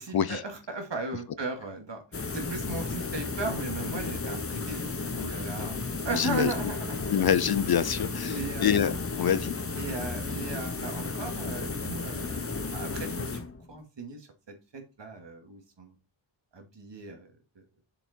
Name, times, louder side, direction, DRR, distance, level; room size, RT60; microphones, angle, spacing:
voice 1, 0.0-7.1 8.3-8.8 9.1-9.3 9.8-13.4 13.7-14.3 14.7-16.0 16.5-17.3, right 3 dB, 60° right, 2.3 m, -37 dB
sound 1, 2.1-13.8, left 3 dB, 30° left, 0.9 m, -34 dB
voice 2, 6.1-6.5 7.1-9.5, left 8 dB, 50° left, 0.5 m, -26 dB
7.0 x 5.6 x 4.4 m
wide cardioid pair, 115°, 49 cm